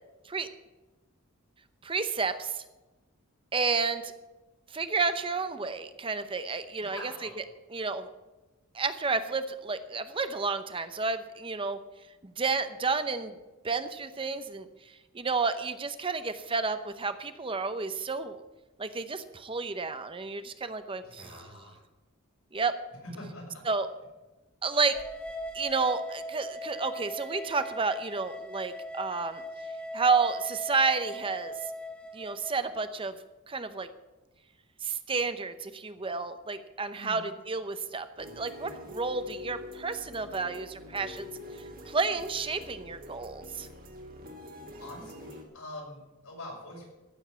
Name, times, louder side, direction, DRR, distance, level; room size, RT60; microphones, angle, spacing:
voice 1, 1.8-2.6 3.5-4.1 4.7-7.0 7.7-8.1 8.7-11.8 12.2-13.3 13.6-14.7 15.1-18.4 18.8-21.4 22.5-22.7 23.7-23.9 24.6-25.0 25.5-29.4 29.9-31.5 32.1-33.2 33.5-33.9 34.8-41.3 41.9-43.7, right 4 dB, 25° right, 10 dB, 0.7 m, -31 dB
voice 2, 6.8-7.3 21.0-21.8 23.2-23.5 37.0-37.3 44.8-46.9, left 1 dB, 80° left, -2 dB, 6.2 m, -44 dB
sound 1, 24.9-32.6, equal, 5° left, 1.7 m, -40 dB
sound 2, 38.2-45.4, left 1 dB, 40° right, 2.0 m, -45 dB
15.0 x 7.1 x 8.1 m, 1.1 s
head